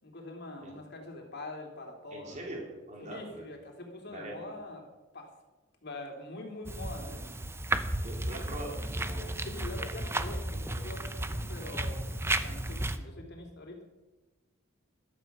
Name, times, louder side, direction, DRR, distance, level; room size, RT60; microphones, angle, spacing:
voice 1, 0.0-2.5 3.0-4.9 5.1-5.3 5.8-7.3 9.4-12.1 12.4-13.8, left 2 dB, 55° left, 2 dB, 3.0 m, -44 dB
voice 2, 2.1-3.5 4.1-4.5 8.0-9.4, right 1 dB, 35° right, -1 dB, 4.2 m, -42 dB
sound 1, 6.6-13.0, right 1 dB, 10° right, 0.7 m, -34 dB
14.5 x 12.5 x 6.1 m, 1.2 s
head